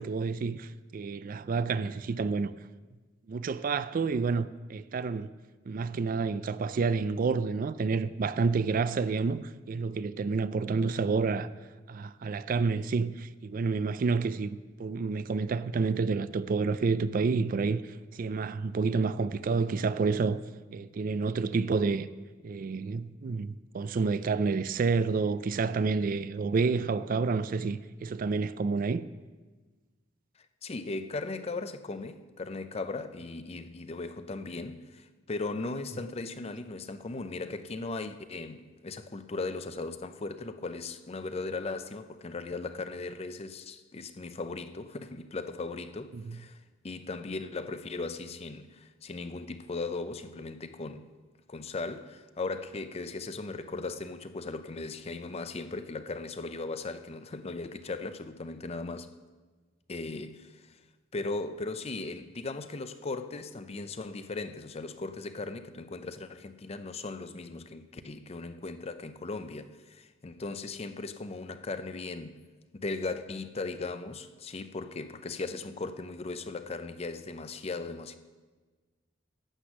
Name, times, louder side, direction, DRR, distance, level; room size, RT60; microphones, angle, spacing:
voice 1, 0.0-2.5 3.3-5.3 5.7-11.5 11.9-20.4 20.7-22.1 22.4-29.0 46.1-46.4, right 4 dB, 45° right, 0.4 m, -29 dB
voice 2, 30.6-51.1 51.5-59.1 59.9-60.8 61.1-72.4 72.7-78.2, left 3 dB, 30° left, 0.5 m, -38 dB
12.0 x 8.0 x 6.1 m
head